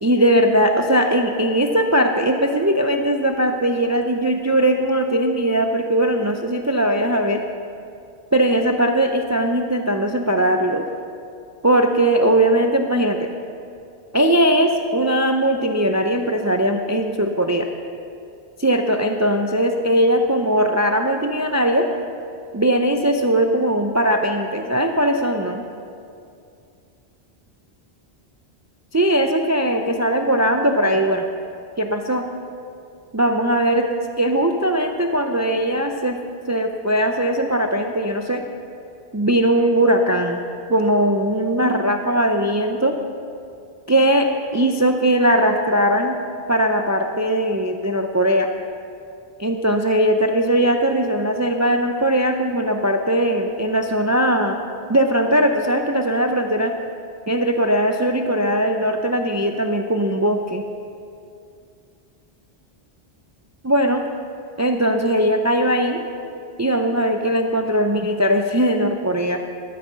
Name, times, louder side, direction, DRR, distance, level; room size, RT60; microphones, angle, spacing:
voice 1, 0.0-7.4 8.3-10.8 11.6-13.3 14.1-17.7 18.6-21.9 22.5-25.6 28.9-31.2 31.8-32.2 33.1-33.9 34.2-36.2 36.5-38.4 39.1-40.4 40.7-43.0 43.9-46.2 46.5-48.5 49.4-54.6 54.9-56.7 57.3-60.6 63.6-64.0 64.6-66.0 66.6-69.4, right 1 dB, 25° right, 4 dB, 0.4 m, -19 dB
13.5 x 8.5 x 5.6 m, 2.4 s
omnidirectional pair, 1.1 m